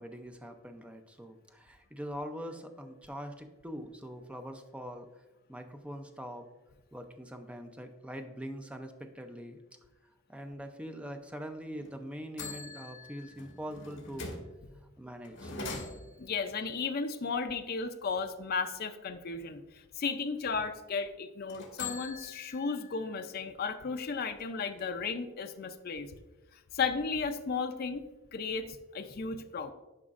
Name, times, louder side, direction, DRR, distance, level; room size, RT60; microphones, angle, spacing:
voice 1, 0.0-5.1 5.5-6.5 6.9-9.6 10.3-14.4 15.0-15.5, equal, 5° right, 6 dB, 0.5 m, -43 dB
sound 1, 11.8-11.9 12.4-14.5 15.2-16.4 21.5-23.1 23.5-23.6 24.0-25.1, left 3 dB, 65° left, 1.6 m, -43 dB
voice 2, 16.2-26.1 26.5-28.0 28.3-29.7, left 5 dB, 50° left, 7 dB, 0.5 m, -34 dB
11.0 x 5.1 x 2.5 m, 1.1 s
head